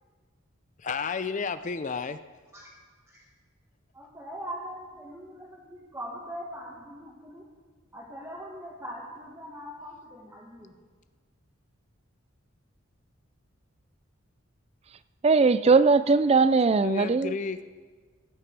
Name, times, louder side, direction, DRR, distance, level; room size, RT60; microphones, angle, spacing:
voice 1, 0.8-2.2 16.8-17.6, left 5 dB, 35° left, 11 dB, 0.5 m, -31 dB
voice 2, 3.9-7.5 7.9-10.7, equal, 15° right, -6 dB, 1.7 m, -41 dB
voice 3, 15.2-17.3, right 4 dB, 30° right, 15 dB, 0.3 m, -20 dB
17.5 x 8.9 x 4.8 m, 1.5 s
head